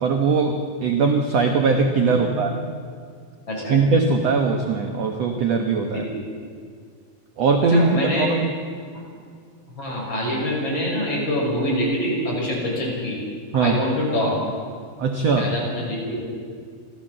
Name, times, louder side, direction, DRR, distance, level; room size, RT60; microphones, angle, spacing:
voice 1, 0.0-2.5 3.7-6.0 7.4-8.5 13.5-13.8 15.0-15.5, right 4 dB, 65° right, 4 dB, 1.7 m, -20 dB
voice 2, 2.1-2.4 3.5-3.8 5.9-6.2 7.6-8.3 9.7-13.2 13.6-14.4 15.4-16.3, left 1 dB, 30° left, -3 dB, 6.7 m, -25 dB
29.5 x 13.0 x 7.5 m, 2.2 s
omnidirectional pair, 4.5 m